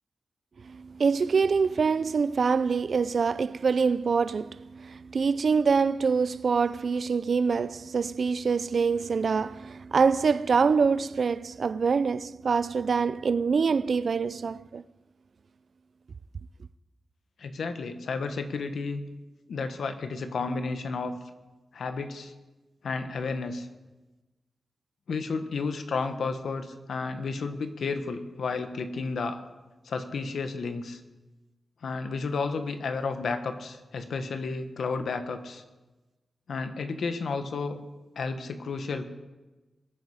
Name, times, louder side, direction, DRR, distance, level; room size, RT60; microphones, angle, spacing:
voice 1, 0.7-14.8, right 5 dB, 55° right, 0.4 m, -25 dB
voice 2, 17.4-19.0 19.5-21.1 21.7-22.3 22.8-23.7 25.1-29.4 29.8-31.0 31.8-35.6 36.5-37.8 38.1-39.0, left 4 dB, 75° left, 1.3 m, -32 dB
22.0 x 9.4 x 4.9 m
wide cardioid pair, 150°, 0 cm